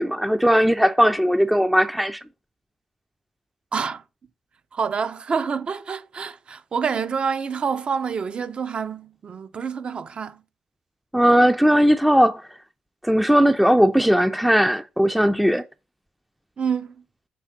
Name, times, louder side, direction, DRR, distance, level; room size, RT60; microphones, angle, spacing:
voice 1, 0.0-2.2 11.1-12.4 13.0-15.6, equal, ahead, 0.4 m, -18 dB
voice 2, 3.7-4.0 4.7-10.4 16.6-16.9, right 6 dB, 50° right, 0.6 m, -27 dB
6.1 x 3.4 x 5.7 m
supercardioid pair, 60°, 2 cm